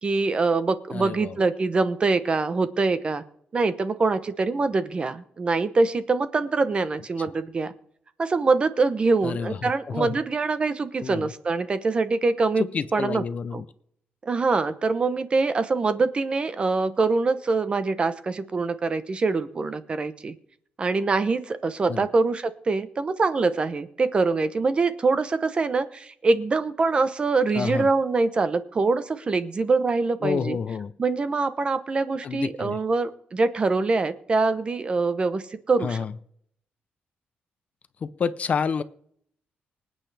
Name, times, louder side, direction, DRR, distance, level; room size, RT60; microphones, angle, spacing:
voice 1, 0.0-3.2 3.5-7.7 8.2-12.6 12.9-13.2 13.5-13.6 14.2-20.4 20.8-30.6 31.0-36.0, right 3 dB, 30° right, 12 dB, 0.8 m, -24 dB
voice 2, 0.9-1.4 9.2-10.2 11.0-11.3 12.6-13.6 21.9-22.1 27.5-27.9 30.2-30.9 32.2-32.8 35.8-36.1 38.0-38.8, left 6 dB, 40° left, 14 dB, 0.6 m, -29 dB
25.5 x 8.9 x 3.4 m, 0.67 s
wide cardioid pair, 160°, 4 cm